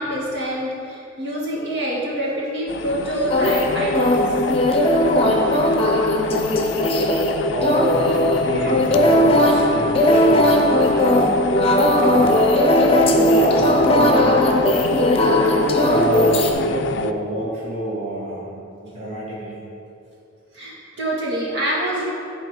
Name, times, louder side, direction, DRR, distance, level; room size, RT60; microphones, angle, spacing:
voice 1, 0.0-4.2 14.5-14.6 20.5-22.1, right 1 dB, 60° right, -5 dB, 2.0 m, -26 dB
sound 1, 2.7-17.1, left 3 dB, 60° left, 0.4 m, -26 dB
sound 2, 3.3-16.5, left 1 dB, 30° left, 0.8 m, -18 dB
voice 2, 7.5-11.4 11.8-12.5 12.9-14.4 15.0-19.6, right 1 dB, 35° right, -8 dB, 1.4 m, -27 dB
11.5 x 4.2 x 5.1 m, 2.7 s
head